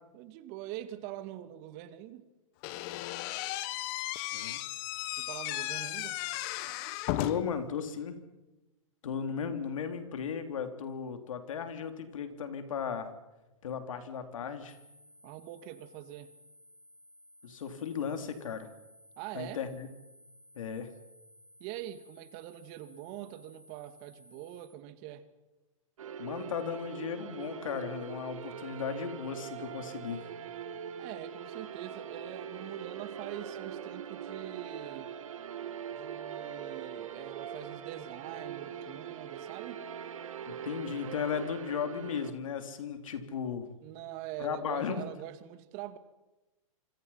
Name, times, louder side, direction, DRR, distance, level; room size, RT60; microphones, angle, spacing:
voice 1, 0.1-2.3 5.2-6.2 15.2-16.3 19.2-19.6 21.6-25.3 31.0-35.2 35.9-39.8 43.8-46.0, right 13 dB, 40° right, 11 dB, 2.2 m, -44 dB
Slam / Squeak, 2.6-7.6, left 16 dB, 45° left, 1.4 m, -35 dB
voice 2, 7.2-8.2 9.0-13.1 13.6-14.8 17.4-18.7 19.3-19.9 20.5-20.9 26.2-30.2 40.5-43.7 44.4-45.0, left 7 dB, 75° left, 8 dB, 3.4 m, -36 dB
sound 1, 14.7-24.7, equal, 5° left, 5.4 m, -59 dB
sound 2, 26.0-42.3, right 8 dB, 80° right, 2.5 m, -42 dB
27.0 x 25.5 x 5.8 m, 1.1 s
hypercardioid pair, 130°, 17 cm